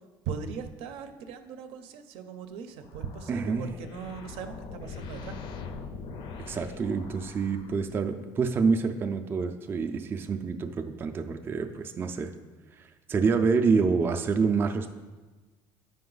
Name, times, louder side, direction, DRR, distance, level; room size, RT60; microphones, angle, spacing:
voice 1, 0.3-5.4, right 6 dB, 85° right, 8 dB, 0.6 m, -39 dB
sound 1, 2.8-8.2, left 4 dB, 55° left, 0.5 m, -42 dB
voice 2, 3.3-3.7 6.5-12.3 12.8-14.9, right 5 dB, 25° right, 5 dB, 0.3 m, -27 dB
7.6 x 5.1 x 3.9 m, 1.3 s
cardioid pair, 150°, 10 cm